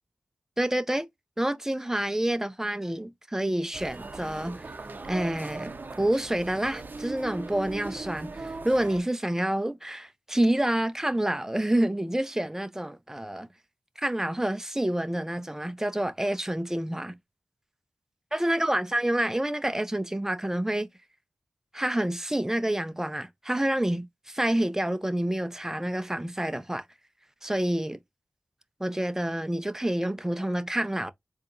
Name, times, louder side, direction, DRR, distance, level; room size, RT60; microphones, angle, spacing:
voice 1, 0.6-1.1 1.4-4.7 5.1-13.5 14.0-17.2 18.3-20.9 21.7-26.8 27.4-28.0 28.8-31.1, right 1 dB, 10° right, 0.6 m, -28 dB
sound 1, 3.7-9.0, right 3 dB, 50° right, 0.7 m, -39 dB
4.0 x 2.8 x 2.6 m
wide cardioid pair, 65°, 4 cm